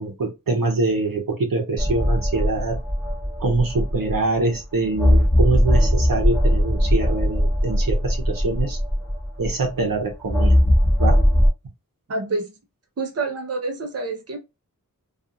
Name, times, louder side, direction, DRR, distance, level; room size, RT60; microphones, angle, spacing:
voice 1, 0.0-2.8 3.4-8.8 9.4-10.6 11.0-11.2, right 3 dB, 75° right, 0.8 m, -24 dB
sound 1, 1.8-4.4 5.0-9.7 10.3-11.5, equal, 5° left, 0.9 m, -19 dB
voice 2, 12.1-12.5 13.0-14.4, right 3 dB, 45° right, 0.7 m, -27 dB
2.4 x 2.4 x 2.6 m
wide cardioid pair, 45°, 34 cm